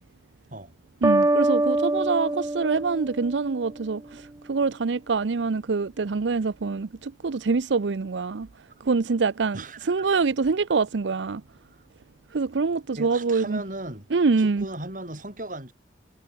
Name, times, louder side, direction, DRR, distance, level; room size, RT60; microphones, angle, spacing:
sound 1, 1.0-3.9, right 2 dB, 15° right, 0.4 m, -24 dB
voice 1, 1.0-8.5 8.8-11.4 12.3-13.6 14.1-14.7, right 4 dB, 80° right, 0.6 m, -25 dB
voice 2, 9.5-9.9 12.9-14.1 14.4-15.7, right 1 dB, 45° right, 6.7 m, -37 dB
head